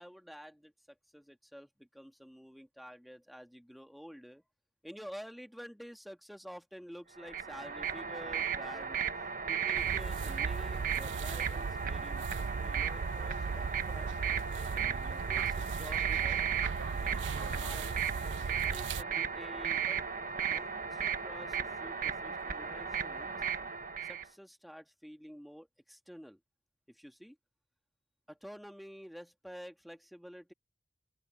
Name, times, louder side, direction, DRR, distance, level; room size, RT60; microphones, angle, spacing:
voice 1, 0.0-4.4 4.8-9.0 9.5-14.1 14.6-16.4 17.0-18.0 18.7-20.0 20.4-23.4 24.0-26.4 26.9-27.4 28.3-30.5, equal, ahead, 1.7 m, -50 dB
sound 1, 7.2-24.3, right 7 dB, 50° right, 1.5 m, -35 dB
sound 2, 9.7-19.0, right 5 dB, 80° right, 0.4 m, -38 dB
open air
head